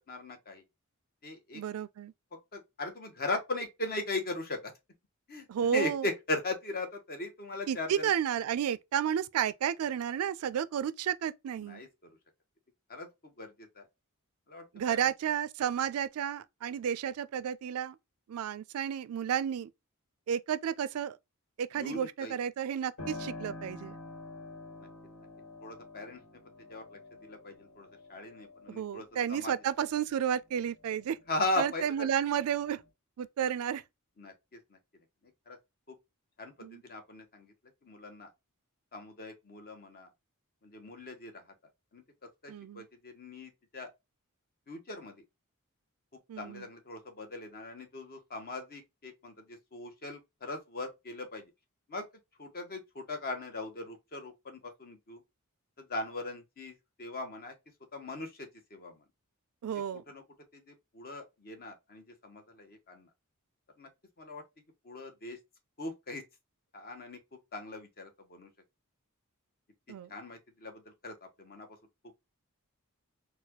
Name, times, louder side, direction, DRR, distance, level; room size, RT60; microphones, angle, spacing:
voice 1, 0.1-0.6 1.2-1.6 2.5-4.7 5.3-5.5 5.7-8.1 11.6-12.2 12.9-13.9 14.5-15.0 21.7-22.3 24.8-24.9 25.6-26.4 26.7-29.5 31.3-32.1 34.2-34.8 35.5-35.6 35.9-36.0 36.4-37.5 37.8-38.3 38.9-40.1 40.6-41.4 41.9-42.0 42.4-43.9 44.7-45.2 46.4-51.4 51.9-52.1 52.4-55.2 55.8-57.5 57.9-59.0 60.1-60.2 60.5-63.1 63.8-63.9 64.2-64.4 64.8-65.4 65.8-66.2 66.7-67.2 67.5-68.5 70.1-71.7, left 2 dB, 45° left, 1.0 m, -39 dB
voice 2, 1.5-2.1 5.5-6.1 7.7-11.8 14.7-18.0 18.3-19.7 20.3-21.2 21.6-24.0 28.7-31.2 31.6-32.8 33.2-33.8 36.6-36.8 42.5-42.9 46.3-46.7 59.6-60.0 69.9-70.1, right 9 dB, 75° right, 0.3 m, -32 dB
Piano, 23.0-31.4 31.8-32.9, left 2 dB, 80° left, 1.4 m, -48 dB
4.0 x 2.3 x 2.9 m
head